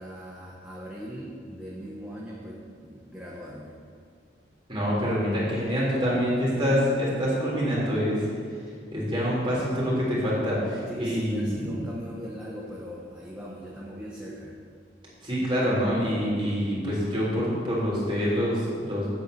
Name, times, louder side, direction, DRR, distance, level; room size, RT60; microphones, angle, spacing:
voice 1, 0.0-3.8 10.9-14.6, equal, 5° right, -5 dB, 1.2 m, -40 dB
voice 2, 4.7-8.2 8.9-11.8 15.2-19.1, equal, 30° right, -7 dB, 3.5 m, -26 dB
8.5 x 8.0 x 7.9 m, 2.1 s
head